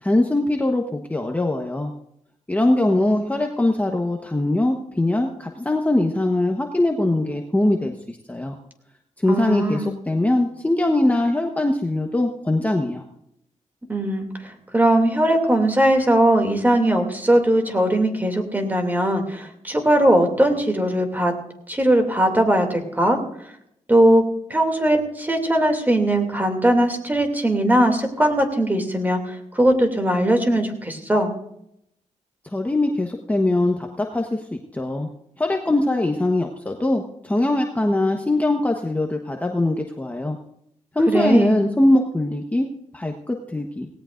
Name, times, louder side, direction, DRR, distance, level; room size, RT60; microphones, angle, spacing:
voice 1, 0.0-1.9 2.5-8.6 9.2-13.0 32.5-35.1 35.4-40.4 40.9-43.9, left 1 dB, 10° left, 2 dB, 1.1 m, -22 dB
voice 2, 9.3-9.9 13.9-21.3 21.7-23.2 23.9-24.2 24.5-31.3 41.1-41.5, right 1 dB, 15° right, 4 dB, 2.7 m, -19 dB
18.0 x 18.0 x 2.6 m, 0.75 s
cardioid pair, 100°, 12 cm